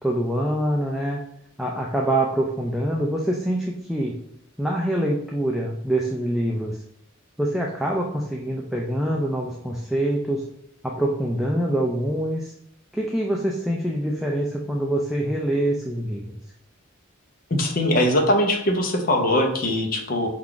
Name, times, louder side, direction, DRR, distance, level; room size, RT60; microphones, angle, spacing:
voice 1, 0.0-1.2 1.6-4.1 4.6-6.8 7.4-10.4 10.8-12.5 12.9-16.2, right 1 dB, ahead, -2 dB, 0.3 m, -25 dB
voice 2, 17.5-20.3, left 1 dB, 45° left, 3 dB, 0.6 m, -21 dB
4.5 x 2.4 x 3.7 m, 0.76 s
head